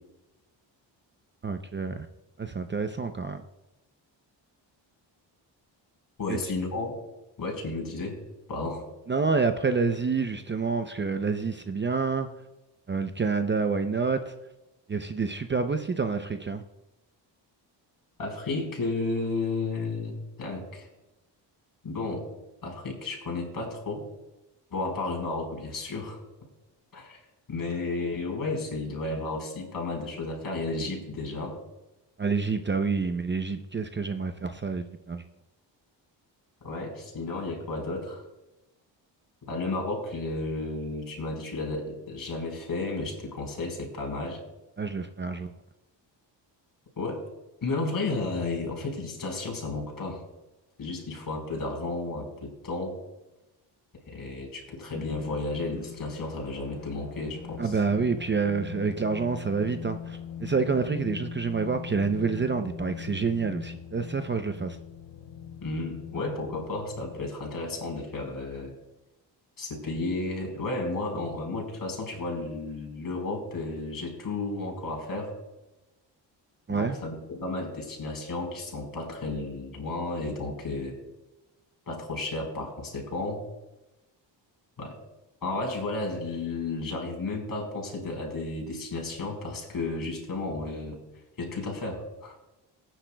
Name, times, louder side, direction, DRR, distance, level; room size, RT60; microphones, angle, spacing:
voice 1, 1.4-2.1 2.4-3.4 6.3-6.4 9.1-12.3 12.9-14.3 14.9-16.6 32.2-35.2 44.8-45.5 57.6-64.8 76.7-77.0, right 4 dB, 25° right, 8 dB, 0.6 m, -28 dB
voice 2, 6.2-7.0 7.4-8.2 8.5-8.9 18.2-20.9 21.8-22.2 22.6-24.0 24.7-26.2 26.9-27.2 27.5-31.6 36.6-38.2 39.4-44.4 47.0-47.2 47.6-50.2 50.8-52.9 54.1-57.7 65.6-68.7 69.6-75.3 76.7-81.0 81.9-83.4 84.8-85.0 85.4-91.0 91.4-92.4, left 2 dB, 50° left, 1 dB, 4.7 m, -33 dB
sound 1, 54.9-67.3, left 8 dB, 80° left, 1.0 m, -41 dB
18.5 x 10.0 x 2.3 m, 0.99 s
cardioid pair, 95°, 44 cm